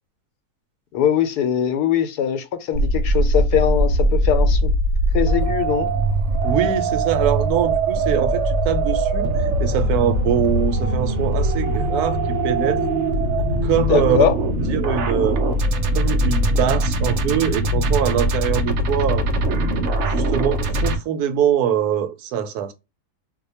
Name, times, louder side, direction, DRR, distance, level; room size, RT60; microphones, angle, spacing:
voice 1, 0.9-4.7 5.1-5.9 13.8-14.3, left 9 dB, 85° left, 1.2 m, -21 dB
sound 1, 2.7-21.0, right 1 dB, 65° right, 0.7 m, -21 dB
voice 2, 6.4-12.8 13.6-14.2 14.7-15.4 15.9-19.3 20.1-22.7, right 8 dB, 80° right, 1.1 m, -23 dB
2.8 x 2.2 x 4.1 m
omnidirectional pair, 1.7 m